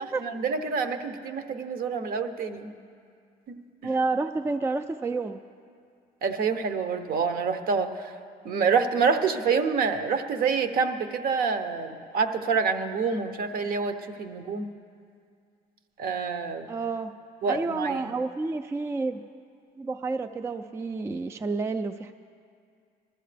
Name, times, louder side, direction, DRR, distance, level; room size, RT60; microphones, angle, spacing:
voice 1, 0.2-2.7 3.5-3.6 6.2-7.9 8.4-14.7 16.0-16.6 17.4-18.0, right 5 dB, 60° right, 8 dB, 0.9 m, -27 dB
voice 2, 3.8-5.4 16.7-17.1 17.5-19.2 19.8-22.1, right 3 dB, 15° right, 8 dB, 0.3 m, -29 dB
20.0 x 13.5 x 3.4 m, 2.3 s
cardioid pair, 110°, 17 cm